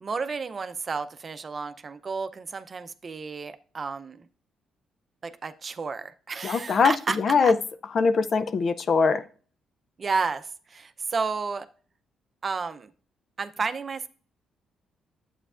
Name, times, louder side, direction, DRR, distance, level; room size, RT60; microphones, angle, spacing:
voice 1, 0.0-4.3 5.2-7.2 7.4-7.5 10.0-11.7 12.4-12.9 13.4-14.1, right 4 dB, 40° right, 10 dB, 0.6 m, -31 dB
voice 2, 6.4-7.5 7.9-9.2, left 5 dB, 50° left, 11 dB, 0.5 m, -22 dB
9.0 x 8.0 x 2.4 m, 0.41 s
cardioid pair, 90°, 0 cm